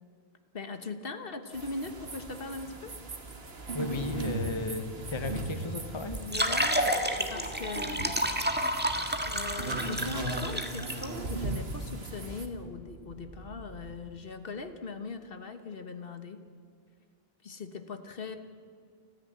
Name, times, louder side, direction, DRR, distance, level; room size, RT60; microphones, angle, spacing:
voice 1, 0.5-2.9 6.1-8.2 9.3-16.4 17.4-18.4, left 4 dB, 65° left, 9 dB, 1.4 m, -40 dB
sound 1, 1.5-12.5, right 2 dB, 75° right, 2.0 m, -38 dB
voice 2, 3.7-6.2, left 2 dB, 30° left, 9 dB, 1.1 m, -35 dB
sound 2, 6.1-11.0, equal, 10° right, 1.6 m, -30 dB
sound 3, 6.1-13.9, right 2 dB, 60° right, 6.1 m, -49 dB
29.5 x 10.5 x 9.2 m, 2.3 s
omnidirectional pair, 1.0 m